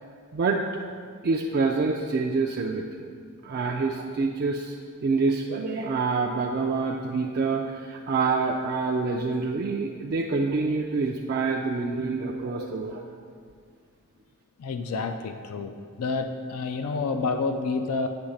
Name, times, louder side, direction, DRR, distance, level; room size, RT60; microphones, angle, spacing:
voice 1, 0.3-0.8 1.2-3.1 3.4-4.8 5.0-13.0, right 4 dB, 45° right, 0 dB, 0.3 m, -26 dB
voice 2, 14.6-18.1, left 4 dB, 85° left, 7 dB, 0.4 m, -29 dB
8.2 x 3.1 x 6.4 m, 2.1 s
head